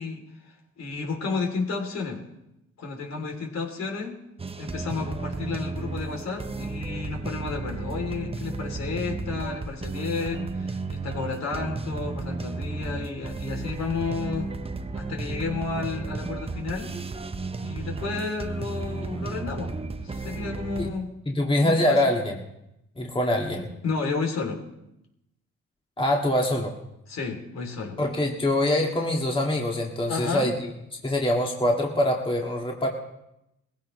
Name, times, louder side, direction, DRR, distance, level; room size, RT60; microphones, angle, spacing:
voice 1, 0.0-2.2 2.8-4.2 4.6-14.5 14.9-16.9 17.6-19.7 20.0-21.1 21.6-22.0 23.8-24.6 27.1-28.0 30.1-30.5, left 4 dB, 60° left, 2 dB, 3.3 m, -32 dB
sound 1, 4.4-20.9, right 3 dB, 20° right, 0.8 m, -33 dB
voice 2, 21.3-22.4 23.0-23.7 26.0-26.7 28.0-30.5 31.0-32.9, left 1 dB, 15° left, 0 dB, 2.0 m, -24 dB
19.5 x 15.5 x 3.2 m, 0.86 s
cardioid pair, 90°, 30 cm